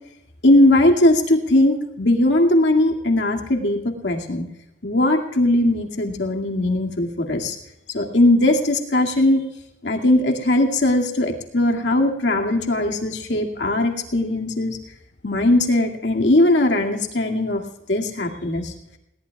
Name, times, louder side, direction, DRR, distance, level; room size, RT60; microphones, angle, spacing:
voice 1, 0.4-4.4 4.8-7.6 7.9-9.4 9.8-14.8 15.2-17.6 17.9-18.7, left 1 dB, 75° left, 2 dB, 2.3 m, -19 dB
21.0 x 18.0 x 2.4 m, 0.86 s
head